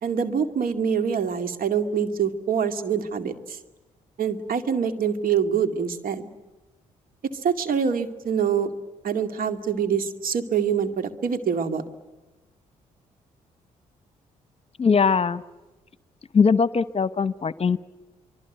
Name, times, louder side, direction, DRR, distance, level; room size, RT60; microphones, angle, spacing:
voice 1, 0.0-3.6 4.2-6.3 7.4-8.7 9.0-11.8, right 7 dB, 60° right, 8 dB, 2.3 m, -25 dB
voice 2, 14.8-15.4 16.3-17.8, left 5 dB, 40° left, 16 dB, 1.0 m, -20 dB
24.5 x 24.5 x 9.3 m, 1.2 s
hypercardioid pair, 50°, 16 cm